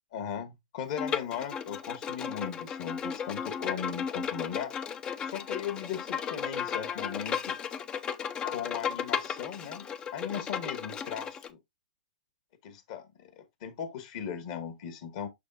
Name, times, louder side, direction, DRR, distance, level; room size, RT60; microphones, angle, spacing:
voice 1, 0.1-4.7 5.3-7.6 8.4-9.8 10.1-11.6 12.6-15.3, left 8 dB, 50° left, 1.4 m, -38 dB
Bowed string instrument, 1.0-11.5, left 7 dB, 20° left, 0.5 m, -35 dB
6.8 x 5.4 x 2.5 m
hypercardioid pair, 130°, 4 cm